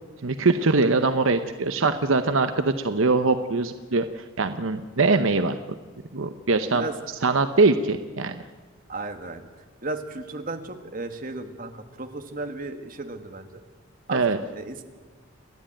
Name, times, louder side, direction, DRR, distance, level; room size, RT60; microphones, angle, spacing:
voice 1, 0.2-5.5 6.1-6.8 7.2-8.4 14.1-14.4, right 3 dB, 70° right, 9 dB, 0.8 m, -22 dB
voice 2, 8.9-9.4 9.8-11.7 12.0-13.6 14.1-14.2 14.5-14.8, right 2 dB, 40° right, 6 dB, 1.6 m, -34 dB
29.0 x 11.5 x 9.0 m, 1.4 s
head